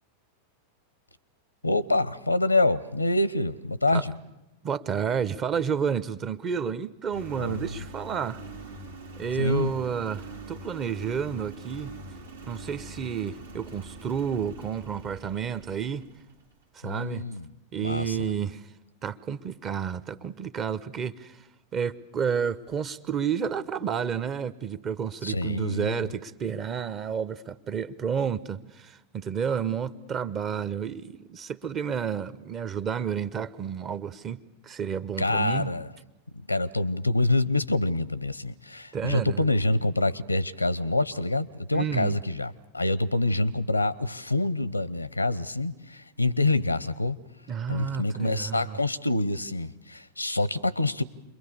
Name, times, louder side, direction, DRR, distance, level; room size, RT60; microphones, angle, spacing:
voice 1, 1.6-4.1 7.4-7.7 9.4-9.7 16.8-17.5 17.8-18.3 25.2-26.1 35.2-35.9 36.5-47.2 47.7-51.0, left 2 dB, 85° left, 0.8 m, -26 dB
voice 2, 4.6-8.4 9.2-12.0 12.5-16.1 16.7-17.3 17.7-18.7 19.0-21.4 21.7-35.7 38.9-39.5 41.7-42.2 47.5-48.8, right 7 dB, 30° right, 0.9 m, -31 dB
Engine, 7.1-16.5, right 2 dB, 85° right, 2.1 m, -43 dB
28.5 x 22.5 x 6.9 m
figure-of-eight pair, 90°, 0 cm